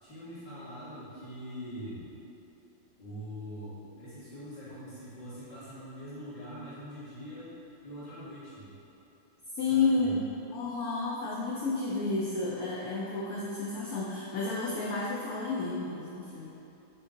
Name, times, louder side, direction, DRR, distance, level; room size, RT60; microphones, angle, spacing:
voice 1, 0.0-2.1 3.0-7.5 7.8-8.7 9.7-10.1, equal, 25° left, -11 dB, 1.3 m, -43 dB
voice 2, 9.5-10.2 10.5-16.6, left 3 dB, 75° left, -5 dB, 0.8 m, -31 dB
4.4 x 3.0 x 3.7 m, 2.9 s
omnidirectional pair, 2.0 m